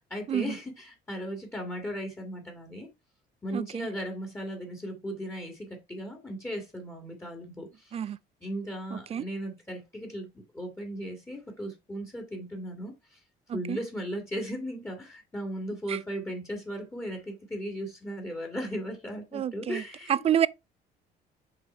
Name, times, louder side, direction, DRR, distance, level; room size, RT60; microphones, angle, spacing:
voice 1, 0.1-2.9 3.4-8.0 8.4-13.2 13.5-20.2, equal, 15° left, 2.0 m, -37 dB
voice 2, 3.5-3.9 7.9-8.2 8.9-9.2 13.5-13.8 15.9-16.0 19.3-19.8 20.1-20.5, right 9 dB, 35° right, 0.4 m, -28 dB
6.8 x 3.9 x 4.3 m
cardioid pair, 110°, 17 cm